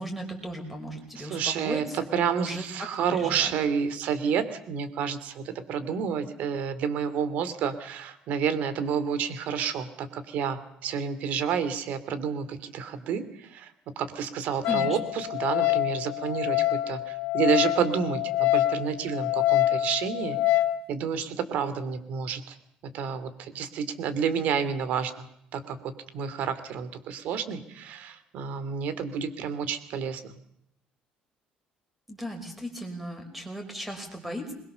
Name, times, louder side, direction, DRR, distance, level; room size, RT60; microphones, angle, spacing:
voice 1, 0.0-2.6 3.0-3.5 14.6-15.0 32.1-34.5, equal, 5° right, 5 dB, 5.1 m, -36 dB
voice 2, 1.2-13.7 14.0-20.6 20.9-22.6 22.8-25.3 25.5-30.3, right 7 dB, 60° right, 13 dB, 2.8 m, -30 dB
Wind instrument woodwind instrument, 14.6-20.8, left 15 dB, 75° left, 1.4 m, -26 dB
26.5 x 22.0 x 7.0 m, 0.75 s
cardioid pair, 165°, 3 cm